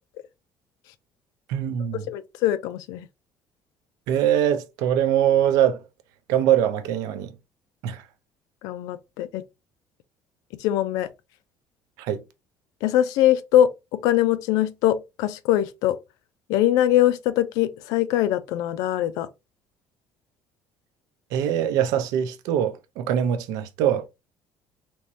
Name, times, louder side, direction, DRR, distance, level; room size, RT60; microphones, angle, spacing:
voice 1, 1.5-2.0 4.1-5.8 6.3-7.3 7.8-8.0 12.0-12.2 21.3-24.1, right 10 dB, 75° right, 0.6 m, -22 dB
voice 2, 2.1-3.1 8.6-9.4 10.6-11.1 12.8-16.0 16.5-19.3, left 12 dB, 80° left, 0.5 m, -22 dB
3.5 x 3.0 x 2.7 m
cardioid pair, 175°, 6 cm